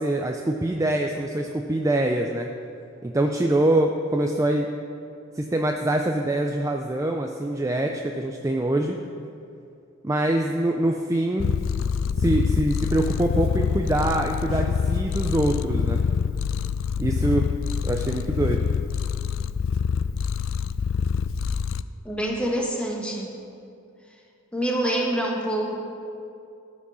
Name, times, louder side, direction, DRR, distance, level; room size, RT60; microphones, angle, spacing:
voice 1, 0.0-2.5 3.0-4.7 5.3-9.0 10.0-11.5 12.2-16.0 17.0-17.5 17.8-18.7, right 1 dB, 15° right, 3 dB, 0.4 m, -24 dB
Purr, 11.4-21.8, left 6 dB, 65° left, 0.3 m, -25 dB
voice 2, 22.0-23.4 24.5-25.8, right 1 dB, 5° left, -1 dB, 1.3 m, -26 dB
13.5 x 6.1 x 6.2 m, 2.6 s
head